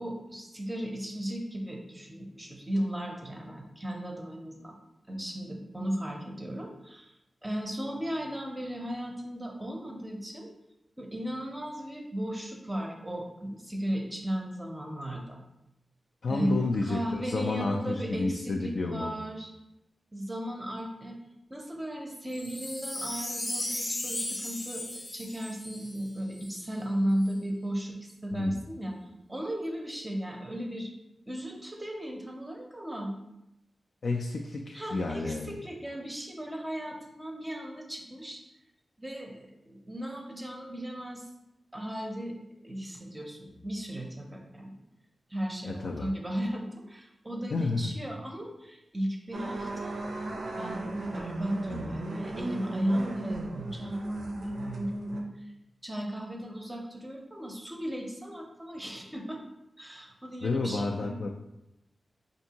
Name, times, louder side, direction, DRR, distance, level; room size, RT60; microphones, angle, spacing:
voice 1, 0.0-4.7 5.1-7.1 7.4-10.5 11.0-15.4 16.3-19.5 20.1-21.2 21.5-24.8 25.1-29.0 29.3-30.9 31.3-33.1 34.7-38.4 39.0-41.3 41.7-42.4 42.6-44.7 45.3-50.0 50.6-55.5 55.8-59.4 59.8-61.2, equal, 15° right, 0 dB, 0.6 m, -35 dB
voice 2, 16.2-19.1 28.3-28.6 34.0-35.5 45.6-46.1 47.5-47.9 51.7-51.9 60.4-61.3, left 3 dB, 70° left, 1 dB, 0.3 m, -31 dB
Wind chime, 22.3-26.7 27.2-27.3, left 1 dB, 35° left, 0.6 m, -36 dB
sound 1, 49.3-55.2, right 2 dB, 85° right, 0.5 m, -36 dB
4.5 x 2.6 x 2.8 m, 0.87 s
wide cardioid pair, 115°, 0 cm